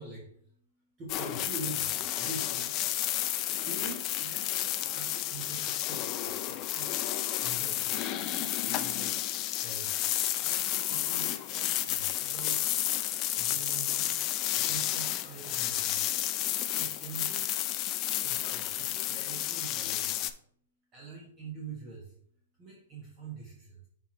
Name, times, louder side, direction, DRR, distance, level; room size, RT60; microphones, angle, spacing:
voice 1, 0.0-16.3 16.7-17.6 18.2-20.4 20.9-22.2 22.6-23.9, right 4 dB, 20° right, -4 dB, 1.3 m, -45 dB
sound 1, 1.1-20.3, left 13 dB, 25° left, 0.4 m, -31 dB
5.7 x 4.4 x 4.3 m, 0.63 s
hypercardioid pair, 160°, 0 cm